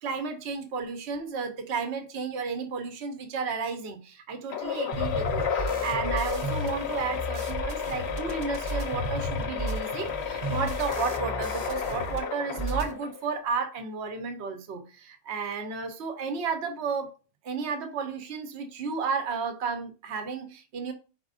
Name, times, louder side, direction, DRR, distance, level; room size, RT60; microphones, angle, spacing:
voice 1, 0.0-17.1 17.4-20.9, right 5 dB, 55° right, 1.1 m, -33 dB
sound 1, 4.5-13.3, left 7 dB, 60° left, 0.8 m, -32 dB
sound 2, 4.9-12.2 12.4-12.9, right 1 dB, 35° right, 0.7 m, -34 dB
5.1 x 4.2 x 2.5 m
omnidirectional pair, 1.4 m